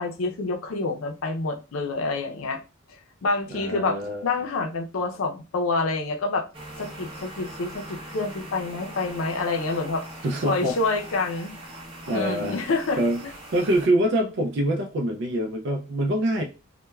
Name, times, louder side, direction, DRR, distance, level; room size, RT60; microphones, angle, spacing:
voice 1, 0.0-2.6 3.2-6.5 6.8-10.0 10.4-11.6 12.1-13.0, left 3 dB, 90° left, 0.5 m, -27 dB
voice 2, 3.5-4.2 10.2-10.8 12.1-12.6 13.0-13.2 13.5-16.4, right 1 dB, 60° right, 0.4 m, -25 dB
sound 1, 6.5-13.9, right 1 dB, 25° right, 0.7 m, -41 dB
3.1 x 2.1 x 2.2 m
head